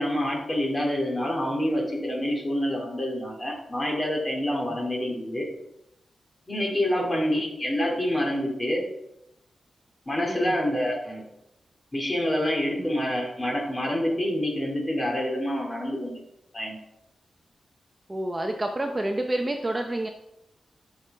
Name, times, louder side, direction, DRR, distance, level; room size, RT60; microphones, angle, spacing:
voice 1, 0.0-5.5 6.5-8.8 10.1-11.2 11.9-16.2 16.5-16.8, left 1 dB, 20° left, -1 dB, 2.4 m, -27 dB
voice 2, 6.9-7.4 10.2-10.6 12.8-12.9 18.1-20.1, right 1 dB, 20° right, 4 dB, 0.7 m, -29 dB
11.5 x 6.0 x 3.4 m, 0.86 s
wide cardioid pair, 120°, 0 cm